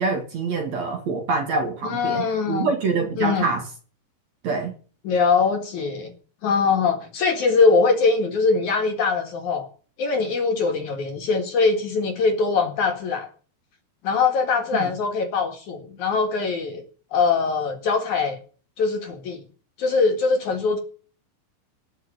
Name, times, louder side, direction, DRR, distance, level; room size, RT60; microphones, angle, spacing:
voice 1, 0.0-3.6 4.4-4.7 14.8-14.9, right 4 dB, 50° right, 3 dB, 2.6 m, -25 dB
voice 2, 1.8-2.7 3.2-3.5 5.0-6.1 6.4-9.7 10.0-13.3 14.0-16.8 17.1-18.4 18.8-19.4 19.8-20.8, left 4 dB, 55° left, 4 dB, 2.9 m, -22 dB
18.5 x 6.3 x 8.8 m, 0.41 s
omnidirectional pair, 4.8 m